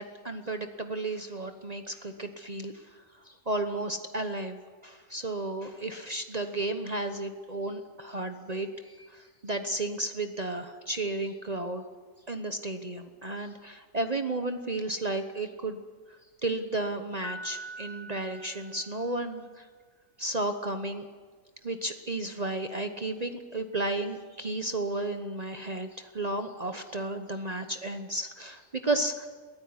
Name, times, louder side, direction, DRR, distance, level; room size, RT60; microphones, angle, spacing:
voice 1, 0.0-2.7 3.2-4.6 4.8-11.8 12.3-15.8 16.4-19.6 20.2-21.0 21.6-29.3, right 2 dB, 30° right, 7 dB, 1.1 m, -33 dB
Piano, 17.2-19.3, right 1 dB, 85° left, 2.2 m, -43 dB
23.0 x 15.5 x 9.7 m, 1.5 s
omnidirectional pair, 1.4 m